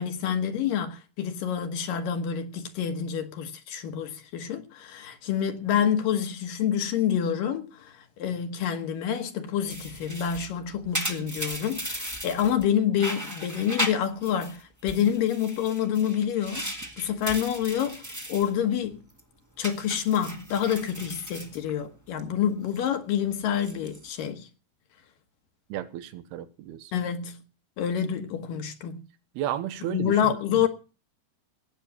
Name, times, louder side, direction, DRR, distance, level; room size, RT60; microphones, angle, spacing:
voice 1, 0.0-7.9 8.2-18.0 18.3-19.0 19.6-24.5 26.9-27.4 27.8-29.0 29.9-30.7, left 9 dB, 65° left, 2.6 m, -27 dB
sound 1, 9.7-12.7 13.0-14.6 14.9-18.5 18.9-19.2 19.6-22.2 22.5-22.9 23.5-24.1, equal, 15° right, 0.7 m, -36 dB
voice 2, 25.7-26.9 29.4-30.1 30.5-30.7, right 12 dB, 80° right, 3.0 m, -33 dB
17.0 x 8.5 x 7.3 m
omnidirectional pair, 4.6 m